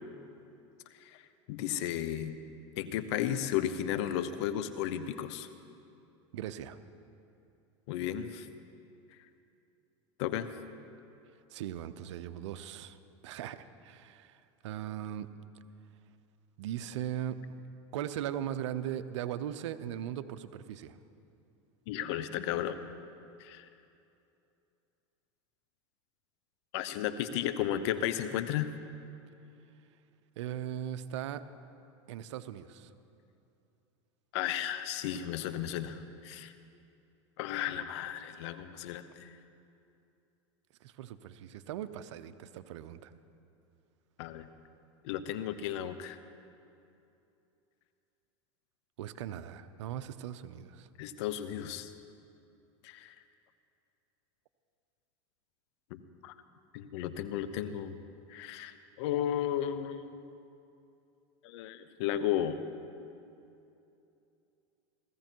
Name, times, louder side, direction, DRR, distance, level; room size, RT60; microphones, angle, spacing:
voice 1, 1.5-2.4 2.8-5.5 7.9-8.5 10.2-10.5 21.9-22.8 23.4-23.7 26.7-28.7 34.3-36.5 37.4-39.3 44.2-44.5 45.0-46.2 51.0-51.9 52.8-53.1 55.9-56.3 56.7-58.0 58.3-60.4 61.4-62.6, left 10 dB, 70° left, 11 dB, 0.9 m, -34 dB
voice 2, 6.3-6.8 11.5-13.0 13.2-15.3 16.6-17.4 17.9-21.0 30.4-31.4 32.1-32.9 40.8-43.1 49.0-50.9, right 11 dB, 80° right, 12 dB, 0.7 m, -39 dB
16.5 x 14.5 x 4.6 m, 2.7 s
supercardioid pair, 110°, 15 cm